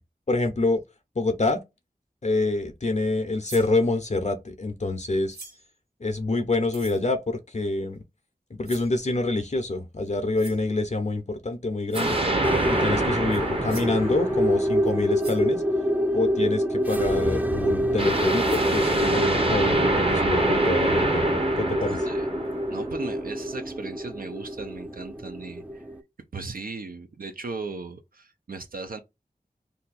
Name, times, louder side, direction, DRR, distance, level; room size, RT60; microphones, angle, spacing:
voice 1, 0.3-0.8 1.2-1.6 2.2-5.4 6.0-8.0 8.6-12.2 12.7-15.6 16.1-22.1, left 2 dB, 45° left, 0.6 m, -26 dB
sound 1, 3.4-3.7 5.3-5.7 6.7-7.0 8.6-9.0 10.3-10.6 11.9-12.2 13.3-13.4 13.7-14.0 14.8-14.9 15.2-15.5 16.8-17.1 18.0-18.1 18.4-18.7, right 2 dB, 90° right, 1.1 m, -43 dB
sound 2, 11.9-15.1 18.0-23.2, right 2 dB, 35° right, 0.8 m, -26 dB
sound 3, 12.4-26.0, equal, 10° right, 0.4 m, -27 dB
voice 2, 22.7-25.8 26.3-29.0, right 4 dB, 65° right, 0.5 m, -37 dB
2.7 x 2.2 x 4.0 m
wide cardioid pair, 50°, 16 cm